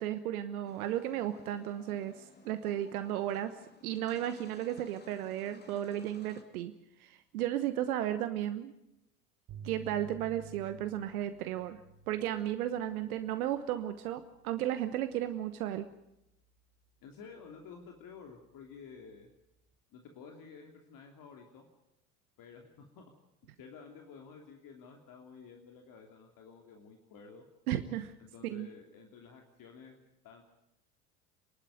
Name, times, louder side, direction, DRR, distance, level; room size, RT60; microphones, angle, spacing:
voice 1, 0.0-3.5 3.8-6.7 7.0-8.7 9.6-11.8 12.1-15.9 27.7-28.1 28.4-28.7, right 12 dB, 70° right, 10 dB, 1.2 m, -34 dB
sound 1, 0.6-6.4, left 3 dB, 20° left, 2.9 m, -57 dB
sound 2, 9.5-19.4, right 6 dB, 40° right, 3.7 m, -55 dB
voice 2, 17.0-19.3 19.9-21.6 22.4-23.0 23.6-27.4 28.2-30.4, left 5 dB, 45° left, 2 dB, 3.0 m, -52 dB
28.0 x 12.0 x 9.3 m, 0.87 s
hypercardioid pair, 75°, 45 cm